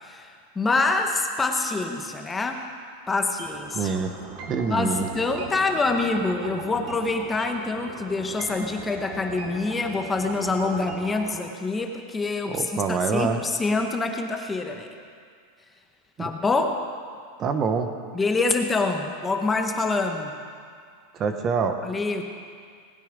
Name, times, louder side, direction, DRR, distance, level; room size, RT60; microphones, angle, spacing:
voice 1, 0.0-2.7 3.1-3.9 4.7-14.9 16.2-16.9 18.1-20.3 21.8-22.3, left 3 dB, 10° left, 4 dB, 0.9 m, -26 dB
sound 1, 3.4-11.4, right 3 dB, 50° right, 2.3 m, -39 dB
voice 2, 3.7-4.1 4.5-5.1 12.5-13.4 16.2-16.3 17.4-17.9 21.1-21.8, right 5 dB, 25° right, 7 dB, 0.9 m, -25 dB
19.0 x 9.4 x 5.1 m, 2.1 s
supercardioid pair, 150°, 0 cm